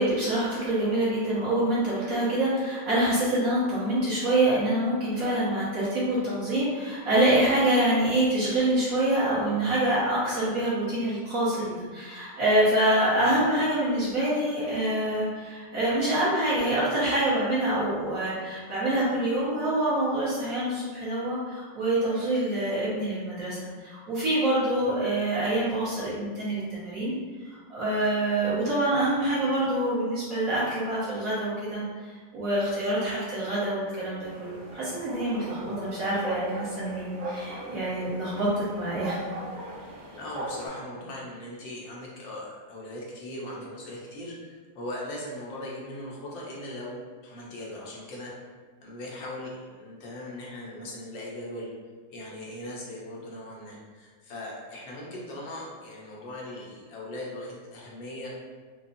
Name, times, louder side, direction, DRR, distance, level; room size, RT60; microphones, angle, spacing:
voice 1, 0.0-27.1 27.4-39.2, right 1 dB, 50° right, -10 dB, 1.5 m, -26 dB
sound 1, 34.2-40.7, right 1 dB, 80° right, 0.8 m, -39 dB
voice 2, 35.6-36.0 40.2-48.3 48.8-51.7 52.1-58.3, left 1 dB, 80° left, -4 dB, 1.6 m, -39 dB
5.5 x 2.3 x 2.6 m, 1.4 s
omnidirectional pair, 2.1 m